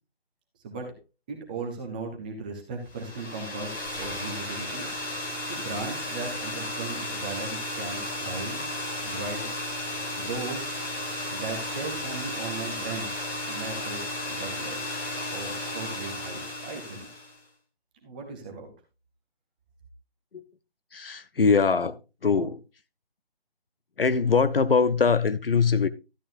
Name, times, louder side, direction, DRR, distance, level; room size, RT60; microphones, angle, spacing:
voice 1, 0.6-0.9 1.3-5.1 5.4-8.7 9.0-9.5 10.2-10.7 11.3-13.2 13.5-14.9 15.3-17.1 18.0-18.7, right 3 dB, 10° right, 0.8 m, -37 dB
sound 1, 2.9-17.4, left 1 dB, 20° left, 2.7 m, -34 dB
voice 2, 20.9-22.6 24.0-25.9, left 5 dB, 65° left, 0.8 m, -22 dB
12.5 x 8.8 x 2.6 m
figure-of-eight pair, 155°, 31 cm